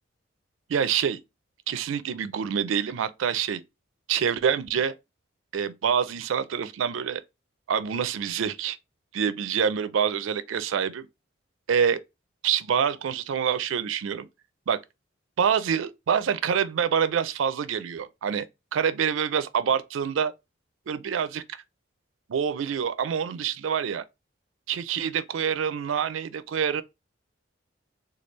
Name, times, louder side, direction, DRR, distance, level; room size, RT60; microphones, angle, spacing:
voice 1, 0.7-1.2 1.7-3.6 4.1-4.9 5.5-7.2 7.7-8.8 9.1-11.1 11.7-12.0 12.4-14.2 14.7-14.8 15.4-18.4 18.7-20.3 20.9-21.6 22.3-24.0 24.7-26.8, right 7 dB, 85° right, 0.4 m, -26 dB
3.2 x 2.3 x 3.0 m
head